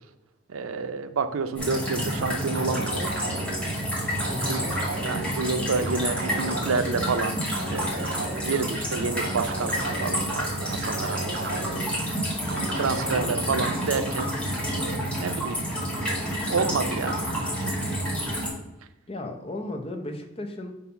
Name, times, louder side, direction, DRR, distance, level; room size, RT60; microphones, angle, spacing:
voice 1, 0.5-3.1 4.5-4.6 5.0-7.9 8.4-11.2 11.5-11.9 12.8-14.3 14.7-15.6 16.0-17.3 17.6-17.9, right 4 dB, 90° right, 10 dB, 0.5 m, -29 dB
sound 1, 1.6-18.5, equal, 5° left, 1.6 m, -29 dB
sound 2, 2.5-3.6 4.2-5.2 5.9-6.9 7.5-8.6 9.2-10.2 10.8-11.9 12.5-13.3, right 2 dB, 60° right, 1.0 m, -34 dB
voice 2, 4.3-4.7 19.1-20.7, left 1 dB, 30° left, 4 dB, 0.7 m, -35 dB
4.9 x 4.1 x 5.6 m, 0.94 s
head